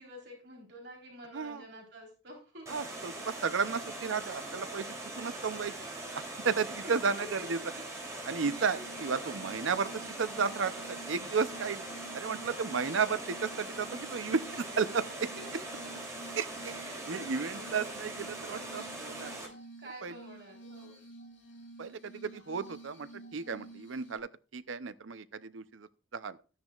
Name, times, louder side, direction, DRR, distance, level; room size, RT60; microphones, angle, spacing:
voice 1, 0.0-2.7 4.2-4.6 6.6-7.3 7.7-7.8 8.5-9.4 12.7-13.2 14.5-14.8 16.3-16.4 16.7-17.9 18.4-18.7 19.8-21.0, right 1 dB, 60° right, 3.8 m, -50 dB
voice 2, 1.3-1.6 2.7-4.9 5.2-5.7 6.1-7.6 8.3-10.7 11.1-14.4 14.8-15.0 16.4-19.3 20.0-20.1 21.8-26.4, right 5 dB, 80° right, 0.6 m, -33 dB
Water, 2.7-19.5, right 2 dB, 15° right, 3.1 m, -42 dB
Glass, 8.4-24.2, right 2 dB, 75° left, 3.6 m, -51 dB
13.5 x 10.0 x 2.4 m
head